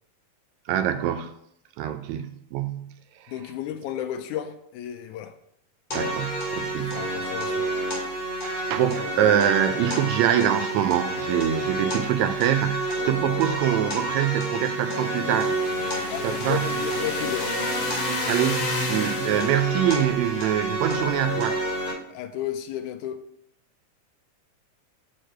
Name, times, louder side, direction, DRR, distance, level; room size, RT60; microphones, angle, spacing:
voice 1, 0.7-1.3 1.8-2.9 5.9-7.1 8.4-15.6 16.2-16.7 18.3-21.6, right 10 dB, 80° right, 1.7 m, -24 dB
voice 2, 3.3-5.3 6.8-7.7 16.1-17.5 22.1-23.2, left 11 dB, 85° left, 2.0 m, -33 dB
sound 1, 5.9-21.9, right 1 dB, 30° left, 3.4 m, -29 dB
sound 2, 14.8-19.7, left 2 dB, 65° left, 2.4 m, -32 dB
6.5 x 6.4 x 4.5 m
omnidirectional pair, 3.5 m